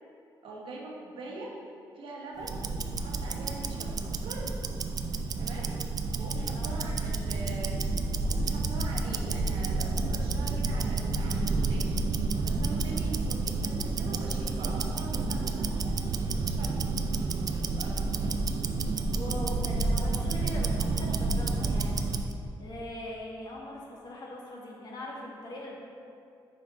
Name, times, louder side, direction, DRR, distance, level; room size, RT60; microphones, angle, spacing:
voice 1, 0.4-1.5 1.9-2.6 2.9-4.5 5.4-5.7 6.2-7.8 8.3-12.0 12.3-15.4 15.8-15.9 16.3-18.1, right 2 dB, 80° right, -2 dB, 1.1 m, -43 dB
Tick-tock, 2.4-22.3, right 3 dB, 45° right, 0.4 m, -30 dB
voice 2, 19.1-22.3 22.6-25.8, left 1 dB, 50° left, -3 dB, 1.4 m, -41 dB
5.3 x 4.8 x 3.9 m, 2.5 s
cardioid pair, 80°, 9 cm